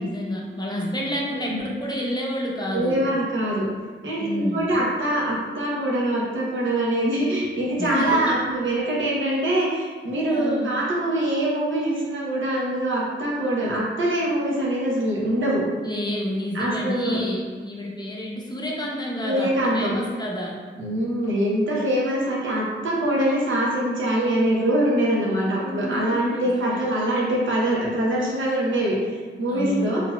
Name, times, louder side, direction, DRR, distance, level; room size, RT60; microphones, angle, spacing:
voice 1, 0.0-3.0 4.2-4.7 7.8-8.3 9.3-9.4 10.3-10.8 15.8-20.6 25.6-26.9 29.5-30.0, equal, 20° left, -3 dB, 0.6 m, -29 dB
voice 2, 2.7-3.7 4.0-15.6 16.5-17.2 19.2-19.9 20.8-29.0 29.4-30.0, right 1 dB, 75° right, -4 dB, 0.8 m, -23 dB
3.8 x 2.8 x 2.2 m, 1.5 s
wide cardioid pair, 85°, 20 cm